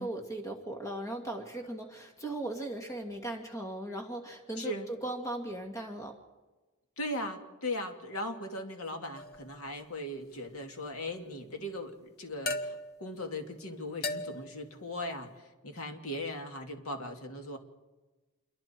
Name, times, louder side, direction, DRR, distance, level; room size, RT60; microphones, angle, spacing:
voice 1, 0.0-6.2, right 1 dB, 15° left, 3 dB, 2.2 m, -38 dB
voice 2, 4.6-4.9 7.0-17.6, left 1 dB, 70° left, 4 dB, 2.4 m, -38 dB
sound 1, 9.1-9.6 12.5-13.1 14.0-14.6, left 2 dB, 45° left, 1.3 m, -36 dB
28.0 x 23.0 x 4.6 m, 1.2 s
head